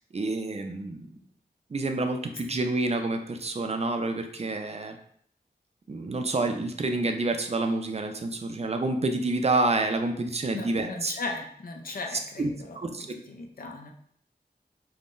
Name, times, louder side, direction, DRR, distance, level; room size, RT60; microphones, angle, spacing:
voice 1, 0.1-1.2 1.7-5.0 5.9-11.1 11.9-12.0 12.4-13.1, right 2 dB, 40° right, 5 dB, 0.4 m, -28 dB
voice 2, 10.5-13.0 13.3-13.9, left 3 dB, 60° left, 2 dB, 0.5 m, -37 dB
3.5 x 2.1 x 2.5 m, 0.65 s
cardioid pair, 45°, 17 cm